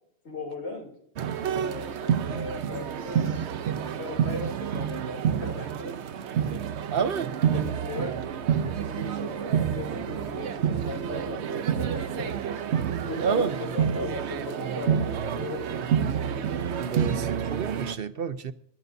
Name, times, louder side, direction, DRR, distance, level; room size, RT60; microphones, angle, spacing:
voice 1, 0.2-0.9 1.3-3.5 3.9-6.0 6.3-6.4 7.5-8.2 8.7-12.6 12.9-15.7, left 3 dB, 80° left, 3.6 m, -38 dB
sound 1, 1.2-18.0, right 8 dB, 80° right, 1.0 m, -28 dB
voice 2, 6.9-7.3 13.2-13.5 16.8-18.5, right 6 dB, 60° right, 0.9 m, -29 dB
27.0 x 15.0 x 2.7 m
omnidirectional pair, 1.1 m